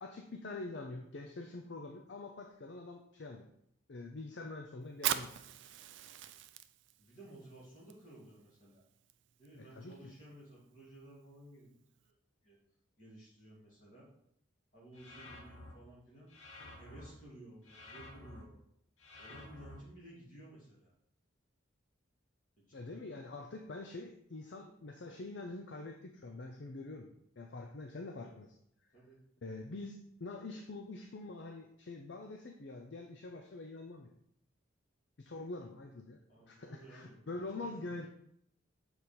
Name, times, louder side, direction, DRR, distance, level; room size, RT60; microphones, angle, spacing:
voice 1, 0.0-3.5 3.9-5.3 9.6-10.1 22.7-27.1 27.4-28.5 29.4-34.1 35.2-36.2 36.5-38.1, left 2 dB, 60° left, 4 dB, 0.5 m, -45 dB
Fire, 4.9-12.1, right 11 dB, 65° right, 0.4 m, -43 dB
voice 2, 7.0-8.8 9.4-11.7 12.0-12.1 12.4-12.6 13.0-14.1 14.7-16.3 16.8-18.6 19.2-20.9 22.6-23.0 28.9-29.2 36.3-37.3 37.6-37.9, right 1 dB, 40° left, -6 dB, 2.6 m, -55 dB
sound 1, 14.9-15.7 16.3-17.1 17.6-18.4 19.0-19.8, left 2 dB, 90° left, 1.2 m, -51 dB
6.6 x 4.0 x 4.3 m, 0.72 s
head